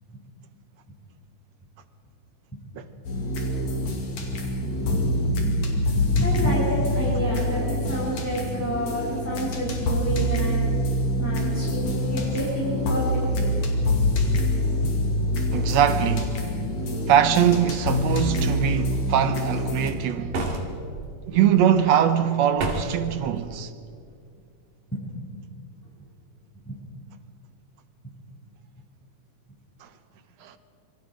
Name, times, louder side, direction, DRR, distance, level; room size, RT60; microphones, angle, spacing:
sound 1, 3.0-19.9, left 1 dB, 65° left, 3.8 m, -25 dB
voice 1, 4.7-10.6 11.2-13.5 14.3-14.4 14.8-14.9 24.9-25.0 26.6-26.8, right 1 dB, 5° left, 6.6 m, -29 dB
voice 2, 15.5-16.5 17.1-20.4 21.3-23.7 29.8-29.9 30.4-30.6, right 9 dB, 70° right, 2.0 m, -22 dB
sound 2, 20.3-21.0 22.6-23.1, right 2 dB, 90° right, 3.9 m, -28 dB
27.0 x 23.5 x 5.1 m
omnidirectional pair, 3.5 m